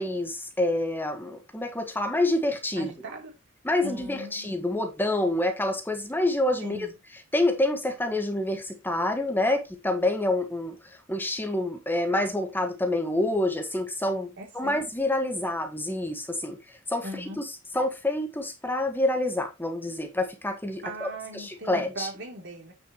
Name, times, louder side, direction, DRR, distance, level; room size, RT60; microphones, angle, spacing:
voice 1, 0.0-2.9 3.6-6.9 7.3-10.7 11.1-16.6 16.9-17.1 17.4-17.5 17.7-21.1 21.3-22.1, left 1 dB, 10° left, 1.4 m, -27 dB
voice 2, 2.8-3.4 3.8-4.6 6.6-6.9 14.4-14.9 17.0-17.5 20.8-22.7, right 1 dB, 60° right, 3.0 m, -39 dB
9.1 x 6.8 x 3.0 m
head